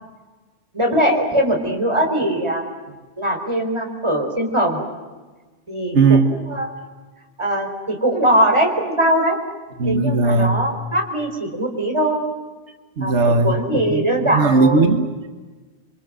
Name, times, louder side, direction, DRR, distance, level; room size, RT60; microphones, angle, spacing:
voice 1, 0.7-2.6 3.2-4.8 5.7-6.7 7.4-9.4 9.8-12.2 13.0-14.9, right 1 dB, 25° right, 2 dB, 4.8 m, -21 dB
voice 2, 5.9-6.2 9.8-10.6 13.0-14.0 14.3-15.3, right 3 dB, 85° right, 7 dB, 1.7 m, -17 dB
28.0 x 24.5 x 7.8 m, 1.3 s
omnidirectional pair, 1.2 m